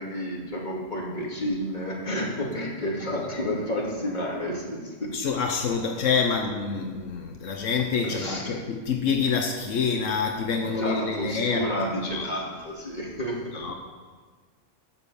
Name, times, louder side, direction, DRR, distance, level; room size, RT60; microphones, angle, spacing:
voice 1, 0.0-5.1 8.0-8.7 10.6-13.6, equal, 35° left, -3 dB, 2.6 m, -31 dB
voice 2, 5.1-11.7 12.0-12.4 13.6-13.7, left 5 dB, 80° left, 3 dB, 1.3 m, -27 dB
12.5 x 7.4 x 6.9 m, 1.5 s
omnidirectional pair, 1.3 m